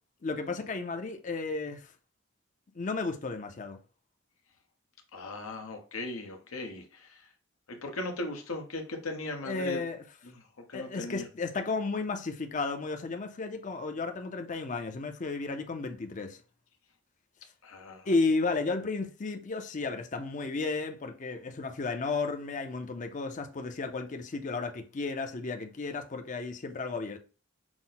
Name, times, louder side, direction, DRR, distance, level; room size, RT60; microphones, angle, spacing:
voice 1, 0.2-1.9 2.7-3.8 9.4-10.0 10.7-16.4 18.1-27.2, left 3 dB, 35° left, 0.5 m, -33 dB
voice 2, 5.1-7.3 7.7-9.8 10.2-10.4 10.7-11.3 17.6-18.1, left 2 dB, 85° left, 1.0 m, -38 dB
6.0 x 2.1 x 3.8 m
head